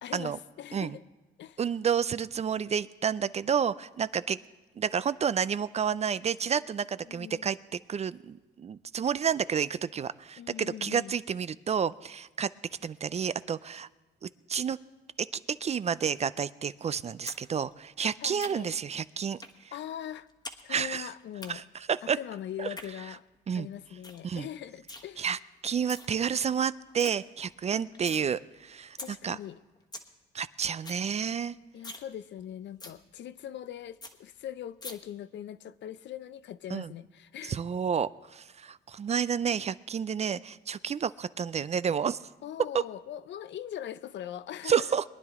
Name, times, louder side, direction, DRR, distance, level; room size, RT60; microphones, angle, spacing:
voice 1, 0.0-1.0 1.4-1.6 7.0-7.5 10.4-11.2 18.2-18.7 19.7-20.3 20.6-21.6 22.0-23.3 23.5-25.3 27.7-28.3 29.0-29.6 31.7-37.6 42.4-44.9, left 10 dB, 65° left, 0.5 m, -41 dB
voice 2, 1.6-4.4 4.8-12.5 12.8-13.9 14.2-14.8 15.2-19.4 20.7-21.1 21.5-21.6 21.9-22.2 22.6-22.7 23.5-23.7 24.2-24.5 25.2-29.0 29.2-29.4 30.3-31.6 36.7-36.9 37.4-42.2 44.6-45.0, right 7 dB, 35° right, 0.4 m, -30 dB
sound 1, 17.3-17.4 17.7-18.8 19.4-19.6 19.9-20.6 20.9-21.5 22.5-22.9 23.3-23.4 23.7-23.8 24.0-24.2 24.5-25.0 25.7-26.1 26.5-26.6 26.8-27.1 27.5-28.2 28.6-28.7 29.0-29.1 29.5-29.6 29.8-30.1 30.4-30.5 30.7-31.0 31.4-31.5 31.8-32.1 32.4-32.5 32.8-33.0 33.4-33.5 33.7-33.8 34.0-34.1 34.8-34.9, left 2 dB, 20° left, 1.3 m, -43 dB
22.0 x 10.0 x 3.6 m
cardioid pair, 90°, 20 cm